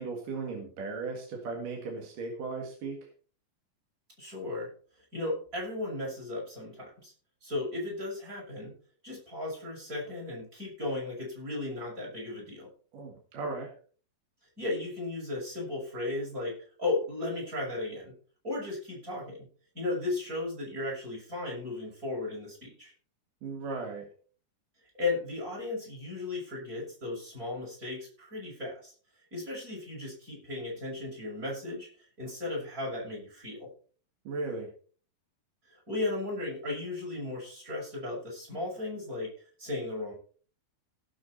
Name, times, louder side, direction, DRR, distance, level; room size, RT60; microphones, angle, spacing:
voice 1, 0.0-3.0 12.9-13.7 23.4-24.0 34.2-34.7, right 3 dB, 65° right, 1 dB, 3.4 m, -36 dB
voice 2, 4.2-4.7 5.1-7.1 7.4-8.7 9.0-12.7 14.6-18.1 18.4-19.5 19.7-22.9 24.9-28.9 29.3-33.7 35.6-39.3 39.6-40.1, left 2 dB, 20° right, -3 dB, 6.4 m, -35 dB
17.5 x 7.2 x 4.2 m, 0.43 s
omnidirectional pair, 4.2 m